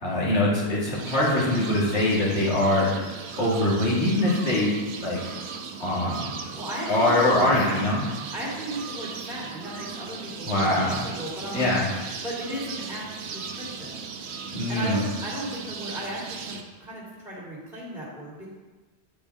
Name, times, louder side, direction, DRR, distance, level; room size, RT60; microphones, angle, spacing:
voice 1, 0.0-4.7 5.0-5.2 5.8-6.3 6.9-8.0 10.5-11.0 11.5-11.8 14.5-15.0, left 1 dB, 80° left, -7 dB, 2.7 m, -23 dB
sound 1, 0.9-16.6, right 5 dB, 80° right, 1.0 m, -37 dB
voice 2, 6.5-7.8 8.1-11.7 12.2-13.1 13.3-14.0 14.7-18.5, equal, 5° right, -9 dB, 2.4 m, -36 dB
9.0 x 5.0 x 4.8 m, 1.2 s
omnidirectional pair, 1.1 m